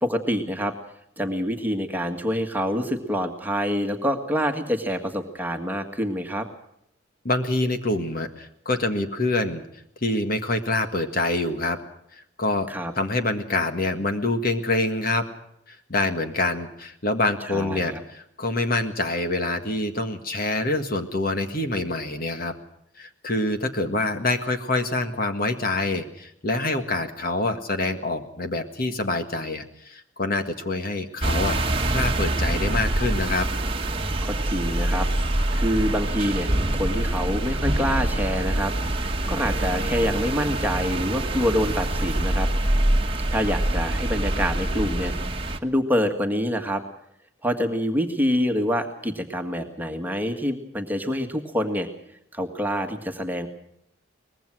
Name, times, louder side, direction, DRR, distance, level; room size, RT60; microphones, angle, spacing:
voice 1, 0.0-0.7 1.2-6.5 12.7-12.9 17.4-18.0 34.2-38.7 39.3-42.5 43.3-45.1 45.6-46.8 47.4-51.9 52.3-53.5, equal, 10° right, 5 dB, 1.8 m, -26 dB
voice 2, 7.3-9.6 10.0-11.8 12.1-12.7 13.0-15.2 15.7-22.5 23.0-31.6 31.9-33.5, left 2 dB, 45° left, 7 dB, 1.7 m, -26 dB
sound 1, 31.2-45.6, right 1 dB, 25° right, 1.5 m, -25 dB
23.5 x 20.5 x 6.2 m, 0.76 s
head